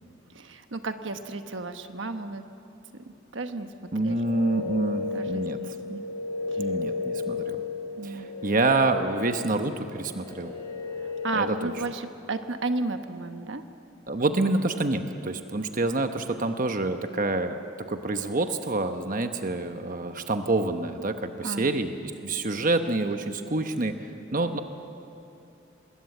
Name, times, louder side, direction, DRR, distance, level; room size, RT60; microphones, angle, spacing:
voice 1, 0.3-2.4 2.9-3.0 3.3-3.7 4.0-4.2 5.1-6.0 6.5-6.7 8.0-8.3 11.2-13.6 14.2-14.6 21.4-21.8, right 3 dB, 70° right, 8 dB, 1.1 m, -33 dB
sound 1, 3.8-11.7, left 4 dB, 25° left, 6.2 m, -34 dB
voice 2, 3.9-5.8 6.6-7.6 8.0-10.5 11.3-11.7 14.1-17.6 17.9-24.6, right 2 dB, 45° right, 7 dB, 1.0 m, -27 dB
26.0 x 21.0 x 8.4 m, 2.8 s
head